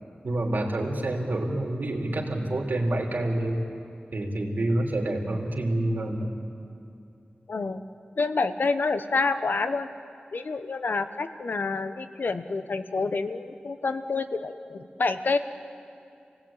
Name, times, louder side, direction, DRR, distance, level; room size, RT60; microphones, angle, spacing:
voice 1, 0.2-3.6 4.1-6.3, right 1 dB, 65° right, 0 dB, 3.4 m, -27 dB
voice 2, 7.5-7.9 8.2-9.9 10.3-15.4, left 3 dB, 75° left, 10 dB, 1.1 m, -28 dB
28.5 x 18.0 x 8.9 m, 2.5 s
wide cardioid pair, 95°, 3 cm